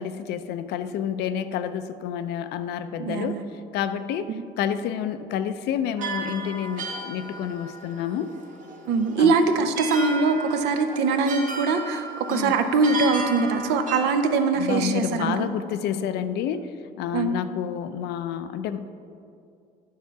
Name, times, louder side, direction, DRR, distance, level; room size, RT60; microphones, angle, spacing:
voice 1, 0.0-3.4 3.7-8.3 9.2-9.4 12.3-12.5 14.5-18.9, left 9 dB, 80° left, 12 dB, 0.5 m, -29 dB
voice 2, 3.0-3.4 4.3-4.4 8.9-15.5 17.1-17.3, right 4 dB, 90° right, 7 dB, 0.7 m, -22 dB
sound 1, 6.0-14.4, right 3 dB, 50° right, 0.9 m, -35 dB
9.4 x 5.7 x 4.6 m, 2.5 s
cardioid pair, 110°, 17 cm